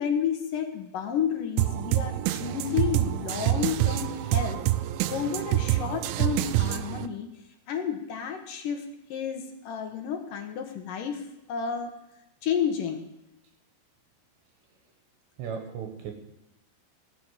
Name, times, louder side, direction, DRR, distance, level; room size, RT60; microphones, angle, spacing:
voice 1, 0.0-4.6 5.1-7.3 7.7-11.9 12.4-13.0, left 8 dB, 70° left, 4 dB, 2.2 m, -31 dB
sound 1, 1.6-7.1, right 15 dB, 90° right, 3.0 m, -27 dB
voice 2, 15.4-16.1, right 7 dB, 75° right, 4 dB, 3.2 m, -35 dB
17.0 x 7.1 x 8.4 m, 0.89 s
omnidirectional pair, 5.3 m